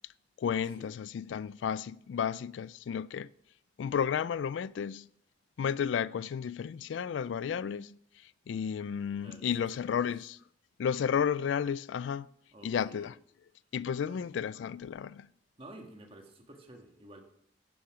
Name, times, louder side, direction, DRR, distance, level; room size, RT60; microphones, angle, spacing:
voice 1, 0.4-3.3 3.8-5.1 5.6-8.0 8.5-10.4 10.8-12.3 12.6-13.1 13.7-15.3, left 7 dB, 80° left, 0.3 m, -32 dB
voice 2, 9.2-10.0 12.5-13.1 14.1-14.3 15.6-17.2, right 1 dB, 30° right, 1.7 m, -51 dB
11.5 x 8.5 x 4.9 m
head